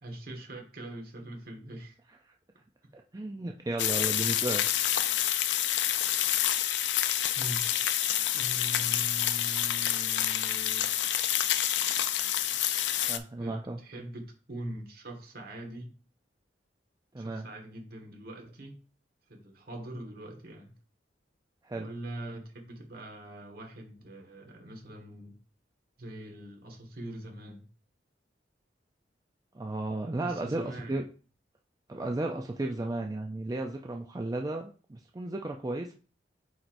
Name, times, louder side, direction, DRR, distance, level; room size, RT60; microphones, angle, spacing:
voice 1, 0.0-2.0 7.3-11.6 12.0-12.1 13.4-15.9 17.2-18.8 19.3-20.7 21.8-25.4 26.0-27.7 30.2-30.9, right 1 dB, 55° right, 1.5 m, -43 dB
voice 2, 2.9-4.7 13.1-13.8 17.1-17.5 21.6-21.9 29.5-31.0 31.9-35.9, right 2 dB, 20° right, 0.4 m, -34 dB
sound 1, 3.8-13.2, left 11 dB, 75° left, 0.5 m, -28 dB
8.0 x 4.6 x 2.6 m
head